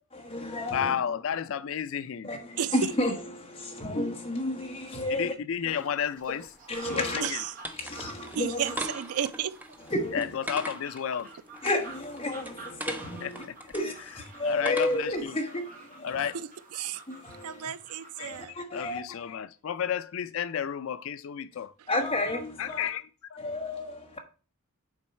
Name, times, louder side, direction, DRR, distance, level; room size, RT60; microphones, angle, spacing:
voice 1, 0.1-0.9 2.2-5.3 5.7-5.8 6.3-6.4 6.7-7.2 7.8-8.6 9.9-10.3 11.6-13.4 13.7-16.2 17.1-17.7 18.2-19.2 21.9-22.9 23.4-24.2, left 1 dB, 25° left, 1.2 m, -32 dB
voice 2, 0.7-2.3 5.1-6.5 6.9-7.4 10.1-11.3 13.2-13.5 14.4-15.4 16.0-16.4 18.2-21.7 22.6-23.4, left 8 dB, 60° left, 0.4 m, -32 dB
voice 3, 2.6-2.9 7.2-7.6 8.3-9.6 16.3-17.0 17.4-18.6, right 8 dB, 75° right, 0.4 m, -33 dB
sound 1, 5.7-18.4, right 3 dB, 35° right, 1.2 m, -48 dB
sound 2, 6.2-15.2, equal, 10° right, 0.6 m, -41 dB
7.4 x 4.6 x 4.3 m
head